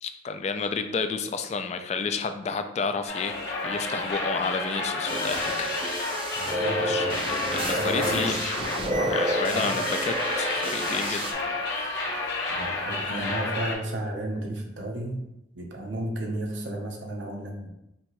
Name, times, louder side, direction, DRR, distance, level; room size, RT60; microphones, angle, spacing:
voice 1, 0.0-3.4 3.6-6.1 6.4-8.6 9.0-11.4, left 5 dB, 35° left, 8 dB, 0.3 m, -31 dB
sound 1, 3.1-13.7, left 2 dB, 60° left, 1.2 m, -30 dB
sound 2, 5.1-11.3, right 1 dB, 30° right, 0.4 m, -30 dB
voice 2, 6.3-8.4 9.5-9.7 12.5-15.2 15.5-17.7, right 1 dB, 70° right, 1 dB, 0.8 m, -33 dB
5.3 x 2.9 x 3.0 m, 0.86 s
head